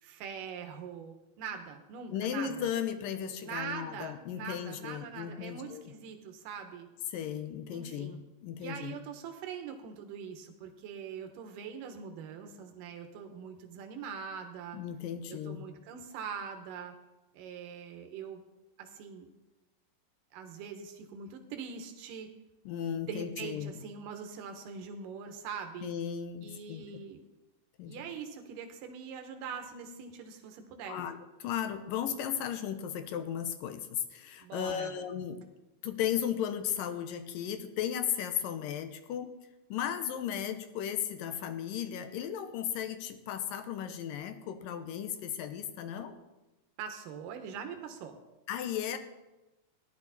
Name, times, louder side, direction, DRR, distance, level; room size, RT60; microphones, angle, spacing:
voice 1, 0.0-2.7 3.4-6.9 7.7-8.2 8.6-14.8 15.3-16.9 17.3-18.4 18.8-19.3 20.3-22.3 22.8-25.9 26.4-27.2 27.8-31.0 34.4-34.9 46.8-48.2, right 6 dB, 80° right, 5 dB, 2.8 m, -43 dB
voice 2, 2.1-5.8 7.1-8.9 14.7-15.6 22.7-23.7 25.8-26.8 27.8-28.0 30.9-35.4 35.8-39.3 39.7-46.2 48.5-49.0, left 9 dB, 90° left, 8 dB, 2.7 m, -35 dB
16.0 x 11.0 x 4.2 m, 1.0 s
omnidirectional pair, 3.9 m